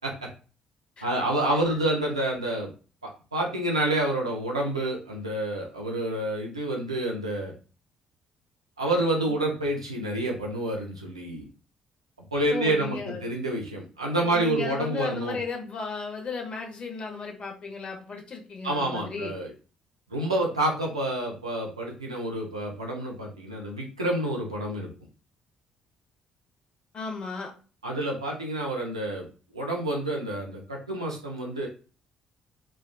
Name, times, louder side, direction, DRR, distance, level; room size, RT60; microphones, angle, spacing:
voice 1, 1.0-2.7 3.0-7.5 8.8-11.4 12.3-15.4 18.6-19.5 20.1-24.9 27.8-29.3 29.5-31.7, right 1 dB, 85° right, -1 dB, 0.6 m, -28 dB
voice 2, 12.5-13.2 14.2-19.3 26.9-27.5, left 4 dB, 40° left, 2 dB, 0.8 m, -35 dB
3.3 x 2.3 x 2.2 m, 0.36 s
figure-of-eight pair, 45°, 3 cm